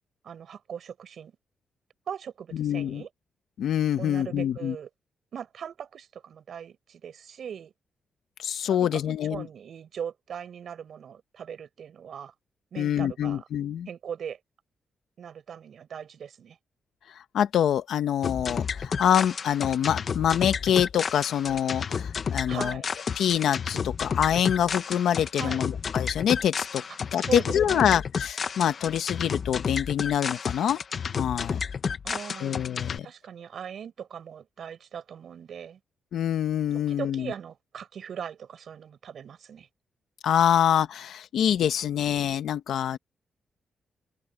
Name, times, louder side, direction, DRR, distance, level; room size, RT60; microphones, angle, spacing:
voice 1, 0.2-1.4 2.1-3.1 4.0-4.9 5.3-7.7 8.7-9.0 9.3-12.3 12.7-13.4 13.9-14.4 15.2-16.6 22.5-22.9 25.3-25.6 27.1-27.9 32.0-32.6 33.0-35.8 36.7-39.7, right 8 dB, 55° right, 6.5 m, -39 dB
voice 2, 2.5-3.0 3.6-4.8 8.4-9.5 12.8-13.9 17.1-22.8 23.1-26.8 27.1-30.8 31.1-31.6 32.4-33.1 36.1-37.3 40.2-43.0, left 9 dB, 80° left, 1.2 m, -25 dB
sound 1, 18.2-33.0, left 6 dB, 40° left, 1.0 m, -31 dB
open air
wide cardioid pair, 155°, 0 cm